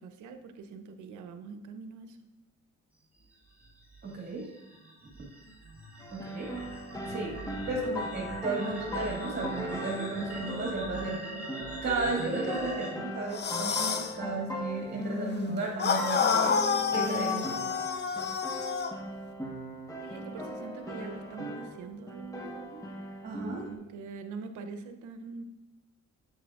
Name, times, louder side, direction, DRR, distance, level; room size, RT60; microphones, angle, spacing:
voice 1, 0.0-2.2 20.0-22.8 23.7-25.4, right 4 dB, 80° right, 8 dB, 0.8 m, -43 dB
sound 1, 3.6-12.9, right 1 dB, 5° right, 2.7 m, -41 dB
voice 2, 4.0-4.5 6.1-6.6 7.1-7.4 7.7-11.3 11.8-16.6 16.9-17.6 23.2-23.7, right 3 dB, 35° right, -2 dB, 1.9 m, -34 dB
sound 2, 6.0-21.8 22.1-23.7, left 1 dB, 10° left, 1.1 m, -39 dB
sound 3, 13.3-14.1 15.8-19.0, left 6 dB, 35° left, 0.6 m, -28 dB
7.7 x 7.6 x 2.4 m, 1.0 s
cardioid pair, 90°, 30 cm